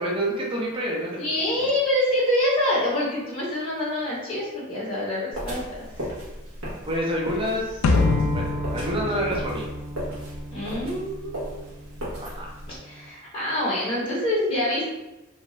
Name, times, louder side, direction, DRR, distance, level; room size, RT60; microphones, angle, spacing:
voice 1, 0.0-1.2 1.6-1.7 6.9-8.0 8.3-9.7 12.1-12.5, equal, 25° right, -2 dB, 0.5 m, -28 dB
voice 2, 1.2-6.1 10.5-11.7 12.7-14.9, left 1 dB, 30° left, -9 dB, 0.7 m, -26 dB
sound 1, 5.3-12.8, equal, 75° right, 1.0 m, -36 dB
sound 2, 7.8-10.3, left 3 dB, 85° left, 0.3 m, -24 dB
Acoustic guitar, 7.8-13.0, equal, 50° right, 1.5 m, -37 dB
2.7 x 2.2 x 2.9 m, 1.0 s
head